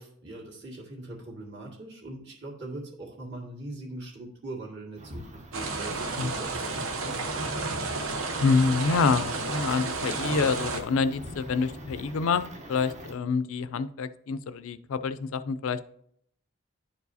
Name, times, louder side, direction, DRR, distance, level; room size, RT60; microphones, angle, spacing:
voice 1, 0.0-7.8, right 2 dB, 55° right, -2 dB, 2.1 m, -41 dB
sound 1, 5.0-13.1, equal, 30° right, 0.8 m, -43 dB
sound 2, 5.5-10.8, right 3 dB, 70° right, 0.9 m, -32 dB
voice 2, 8.4-15.9, left 4 dB, 65° left, 13 dB, 0.4 m, -27 dB
11.0 x 4.7 x 2.7 m, 0.67 s
head